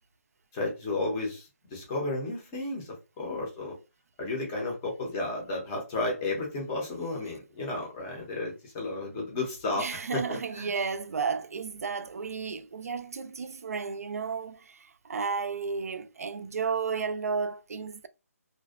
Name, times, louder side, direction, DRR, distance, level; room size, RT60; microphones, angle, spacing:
voice 1, 0.5-3.7 4.2-10.7, left 2 dB, 10° left, 0.5 m, -33 dB
voice 2, 9.7-18.1, right 5 dB, 75° right, 0.3 m, -33 dB
2.5 x 2.1 x 2.3 m
hypercardioid pair, 175°, 8 cm